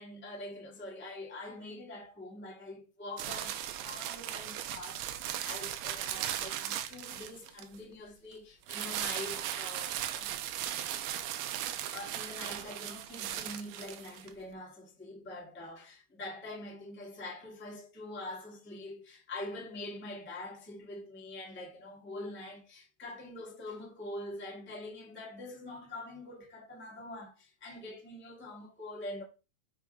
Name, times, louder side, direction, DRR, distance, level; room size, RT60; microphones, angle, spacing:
voice 1, 0.0-10.3 11.6-29.2, left 2 dB, 10° left, 0.7 m, -44 dB
sound 1, 3.2-7.8 8.7-14.3, right 11 dB, 85° right, 2.6 m, -37 dB
6.0 x 3.7 x 4.6 m
omnidirectional pair, 4.3 m